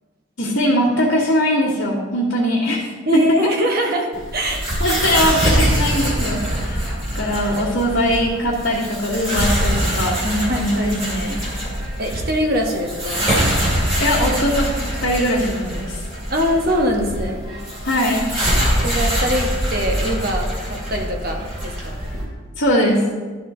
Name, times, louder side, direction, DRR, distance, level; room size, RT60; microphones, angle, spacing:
voice 1, 0.4-3.4 4.5-6.9 7.1-11.4 14.0-16.0 17.8-18.2 18.7-18.8 22.5-23.1, equal, 60° left, -10 dB, 1.6 m, -21 dB
voice 2, 3.1-4.7 10.5-10.9 12.0-13.3 16.3-17.5 18.8-22.0, equal, 45° right, 1 dB, 1.1 m, -23 dB
sound 1, 4.1-22.2, equal, 30° right, 2.2 m, -23 dB
12.0 x 4.2 x 3.7 m, 1.4 s
head